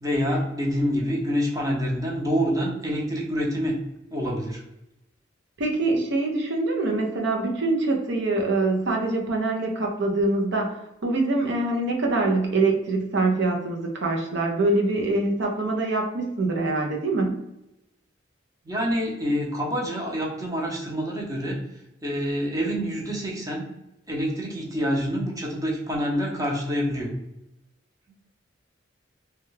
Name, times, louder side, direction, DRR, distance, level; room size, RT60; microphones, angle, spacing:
voice 1, 0.0-3.8 4.1-4.6 18.6-21.6 22.0-23.7 24.1-27.1, equal, 20° right, -2 dB, 0.8 m, -26 dB
voice 2, 5.6-10.7 11.0-17.4, right 2 dB, 65° right, 1 dB, 0.6 m, -24 dB
3.3 x 2.3 x 3.1 m, 0.88 s
head